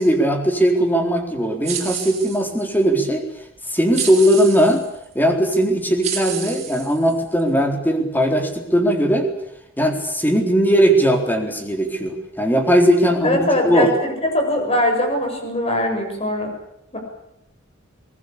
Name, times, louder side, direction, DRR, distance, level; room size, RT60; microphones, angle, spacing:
voice 1, 0.0-3.2 3.7-4.9 5.1-9.3 9.8-13.9, equal, 10° left, 4 dB, 3.9 m, -18 dB
sound 1, 1.6-2.8 3.9-4.9 5.5-5.6 6.0-7.4, right 8 dB, 35° right, 5.7 m, -30 dB
voice 2, 13.2-16.5 16.9-17.0, left 1 dB, 30° left, 3 dB, 7.5 m, -21 dB
23.5 x 20.0 x 8.6 m, 0.81 s
head